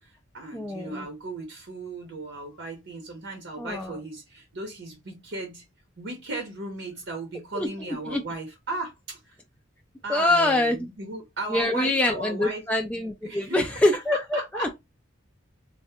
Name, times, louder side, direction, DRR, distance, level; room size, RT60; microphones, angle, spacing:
voice 1, 0.0-5.6 6.0-9.4 10.0-12.6 13.2-13.6 14.1-14.8, right 2 dB, 60° right, 0.7 m, -36 dB
voice 2, 0.5-1.1 3.6-4.0 7.5-8.2 10.1-10.9 11.5-14.7, left 2 dB, 5° left, 0.3 m, -25 dB
3.2 x 2.1 x 2.7 m
head